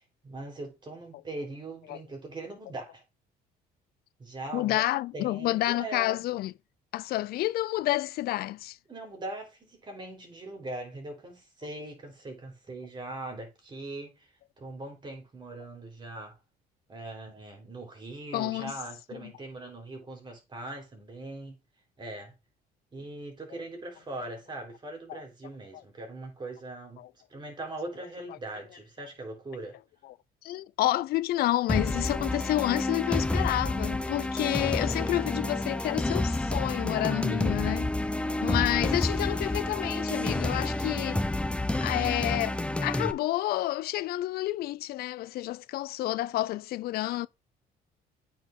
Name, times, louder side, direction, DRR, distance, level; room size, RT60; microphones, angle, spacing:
voice 1, 0.0-3.0 4.2-4.9 5.1-6.3 8.9-16.4 16.9-21.6 22.0-22.3 22.9-27.0 27.3-29.8, right 2 dB, 25° right, 3.6 m, -41 dB
voice 2, 4.5-6.5 6.9-8.8 18.3-18.7 19.1-19.3 25.1-25.2 27.0-27.1 30.0-30.1 30.4-38.0 38.4-41.3 41.8-47.3, left 16 dB, 65° left, 0.4 m, -29 dB
sound 1, 31.7-43.1, left 2 dB, 5° left, 0.6 m, -29 dB
9.0 x 4.5 x 3.6 m
cardioid pair, 110°, 17 cm